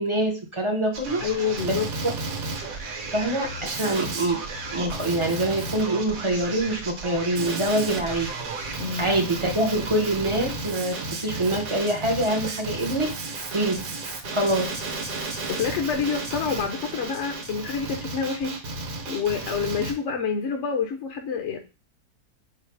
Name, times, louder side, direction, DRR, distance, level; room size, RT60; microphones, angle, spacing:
voice 1, 0.0-1.2 1.6-1.8 3.1-4.4 4.7-8.3 9.0-13.1 13.5-13.9 14.3-14.7, right 1 dB, 40° right, 1 dB, 0.4 m, -25 dB
Male speech man speaking, 0.9-19.9, right 3 dB, 65° right, 1.3 m, -33 dB
voice 2, 1.2-1.9 8.8-9.1 15.5-18.6 19.1-21.6, left 6 dB, 60° left, 4 dB, 0.8 m, -27 dB
4.6 x 2.0 x 4.5 m, 0.29 s
omnidirectional pair, 1.7 m